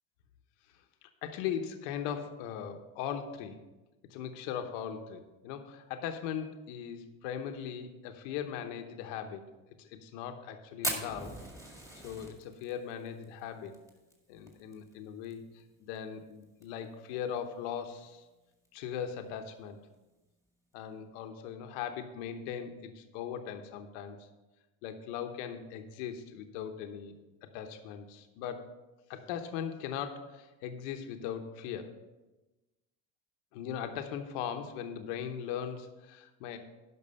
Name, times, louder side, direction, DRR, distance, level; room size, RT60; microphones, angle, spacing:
voice 1, 1.0-3.6 4.1-9.4 9.8-11.4 11.9-13.8 14.3-18.2 18.7-19.8 20.7-24.2 24.8-27.1 27.4-28.7 29.1-31.9 33.5-36.6, left 8 dB, 90° left, 6 dB, 1.0 m, -39 dB
Fire, 10.8-15.3 15.6-15.7 15.9-16.0 16.4-16.8 17.4-17.5 18.5-18.7, right 1 dB, 10° right, 1.9 m, -39 dB
11.0 x 6.0 x 5.4 m, 1.1 s
cardioid pair, 135°, 35 cm